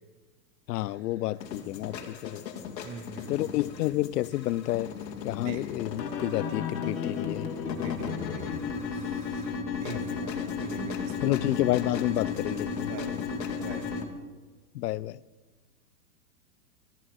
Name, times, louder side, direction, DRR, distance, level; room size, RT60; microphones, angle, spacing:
voice 1, 0.7-2.4 3.3-4.9 5.2-7.5 9.9-10.2 11.2-12.9 14.7-15.2, left 15 dB, 70° left, 0.5 m, -30 dB
sound 1, 1.4-14.0, left 6 dB, 90° left, 2.3 m, -34 dB
voice 2, 2.8-3.5 5.4-5.6 7.7-9.6 9.8-11.4 12.9-13.2 13.6-14.0, right 5 dB, 45° right, 1.7 m, -43 dB
14.0 x 7.3 x 8.5 m
supercardioid pair, 155°, 49 cm